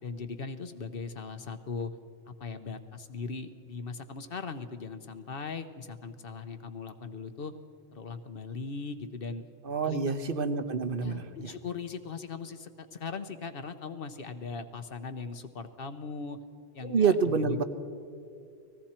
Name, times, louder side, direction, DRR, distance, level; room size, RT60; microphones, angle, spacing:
voice 1, 0.0-1.9 2.3-7.5 7.9-9.4 9.8-10.1 11.0-16.4 16.7-17.6, left 5 dB, 65° left, 9 dB, 1.1 m, -39 dB
voice 2, 9.6-11.5 16.8-17.6, right 5 dB, 60° right, 10 dB, 1.2 m, -27 dB
30.0 x 20.0 x 4.4 m, 2.3 s
omnidirectional pair, 1.0 m